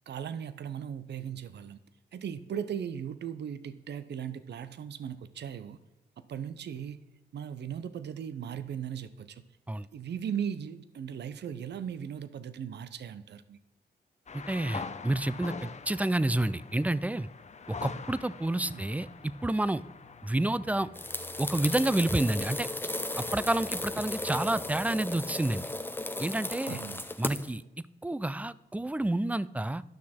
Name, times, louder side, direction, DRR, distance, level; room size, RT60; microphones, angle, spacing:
voice 1, 0.1-1.8 2.1-5.8 6.3-7.1 7.3-9.4 9.9-13.6 18.5-18.9 26.7-27.1, right 8 dB, 70° right, 13 dB, 0.6 m, -38 dB
sound 1, 14.3-21.9, left 5 dB, 40° left, 0.7 m, -45 dB
voice 2, 14.3-17.3 17.7-19.1 19.4-19.8 20.2-20.9 21.4-22.7 23.2-25.6 26.2-26.8 27.2-27.6 28.0-29.8, right 1 dB, 10° right, 17 dB, 0.4 m, -29 dB
sound 2, 20.0-25.3, left 4 dB, 80° left, 1.6 m, -55 dB
sound 3, 20.9-27.5, left 2 dB, 10° left, 0.8 m, -35 dB
11.5 x 6.2 x 4.3 m, 1.0 s
cardioid pair, 65°, 18 cm